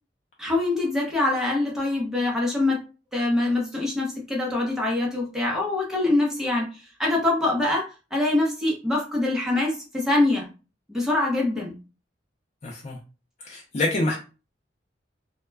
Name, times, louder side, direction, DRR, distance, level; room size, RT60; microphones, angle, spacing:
voice 1, 0.4-2.8 3.1-10.5 10.9-11.8, left 2 dB, 5° right, -2 dB, 0.7 m, -24 dB
voice 2, 12.6-13.0 13.4-14.2, left 2 dB, 40° left, -1 dB, 0.5 m, -26 dB
2.1 x 2.1 x 3.3 m, 0.32 s
head